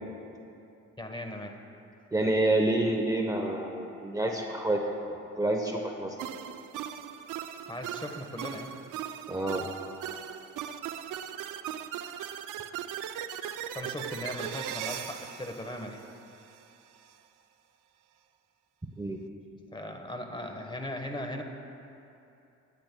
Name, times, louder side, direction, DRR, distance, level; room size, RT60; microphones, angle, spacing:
voice 1, 1.0-1.7 7.7-8.7 13.7-16.1 19.7-21.4, left 1 dB, 15° left, 4 dB, 1.2 m, -38 dB
voice 2, 2.1-4.8 5.4-6.2 9.3-9.7 19.0-19.2, right 1 dB, 10° right, 1 dB, 0.9 m, -28 dB
sound 1, 6.2-16.6, right 10 dB, 90° right, 0.5 m, -39 dB
22.5 x 10.5 x 2.2 m, 2.8 s
cardioid pair, 90°, 30 cm